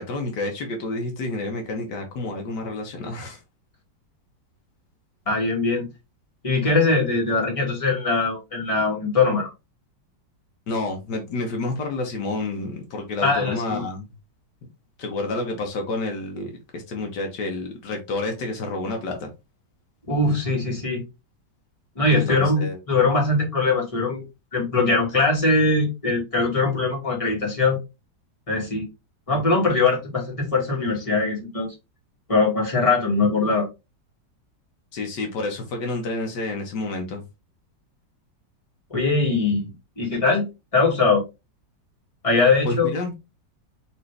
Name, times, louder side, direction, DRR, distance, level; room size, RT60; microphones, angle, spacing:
voice 1, 0.0-3.4 10.7-14.1 15.0-19.3 22.3-22.8 34.9-37.2 42.6-43.1, left 2 dB, 75° left, 1.5 m, -29 dB
voice 2, 5.3-5.9 6.4-9.5 13.2-13.8 20.1-21.0 22.0-24.2 24.5-27.8 28.5-28.8 29.3-31.7 32.3-33.7 38.9-40.5 40.7-41.2 42.2-42.9, left 3 dB, 20° left, 1.8 m, -21 dB
4.1 x 3.5 x 3.2 m
omnidirectional pair, 1.9 m